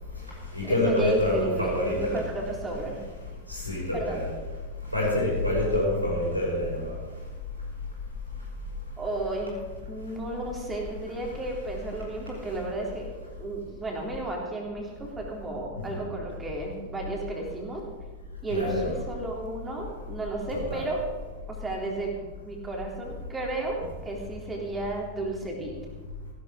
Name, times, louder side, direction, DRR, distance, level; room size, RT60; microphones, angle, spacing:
voice 1, 0.0-2.2 3.4-4.3 4.8-7.2 8.3-8.5 15.8-15.9 18.5-18.9 20.5-20.8, left 1 dB, 90° left, -5 dB, 6.0 m, -27 dB
voice 2, 0.6-3.0 3.9-4.2 9.0-9.6 9.9-17.9 18.4-21.0 21.5-25.7, right 2 dB, 15° right, -1 dB, 3.5 m, -33 dB
16.0 x 12.0 x 5.2 m, 1.4 s
figure-of-eight pair, 90°, 0 cm